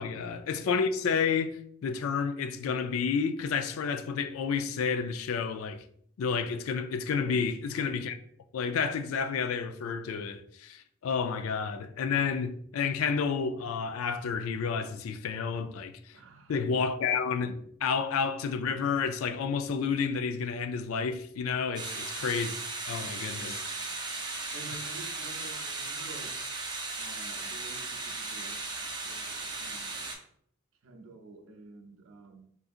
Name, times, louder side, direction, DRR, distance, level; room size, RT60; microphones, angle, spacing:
voice 1, 0.0-5.8 6.2-8.2 8.5-15.9 16.5-22.6 22.9-23.6, left 6 dB, 85° left, 0.3 m, -30 dB
voice 2, 16.1-16.8 21.8-22.2 23.0-23.9 24.5-26.4 27.0-30.1 30.8-32.5, right 3 dB, 70° right, 0.5 m, -50 dB
sound 1, 21.7-30.1, right 3 dB, 20° right, 0.4 m, -37 dB
3.7 x 2.6 x 2.4 m
head